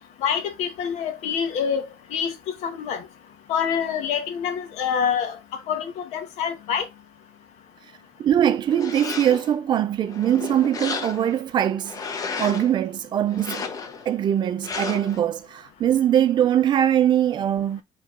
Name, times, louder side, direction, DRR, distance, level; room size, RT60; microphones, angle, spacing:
voice 1, 0.2-1.8 2.1-2.3 2.6-3.0 3.5-5.4 5.7-6.9, left 7 dB, 85° left, 1.2 m, -26 dB
voice 2, 8.2-13.7 14.1-17.8, right 10 dB, 40° right, 0.5 m, -22 dB
sound 1, 8.7-9.6 10.1-11.4 11.8-12.7 13.3-14.1 14.6-15.2, left 5 dB, 30° left, 0.7 m, -33 dB
4.6 x 3.1 x 3.7 m
cardioid pair, 165°, 11 cm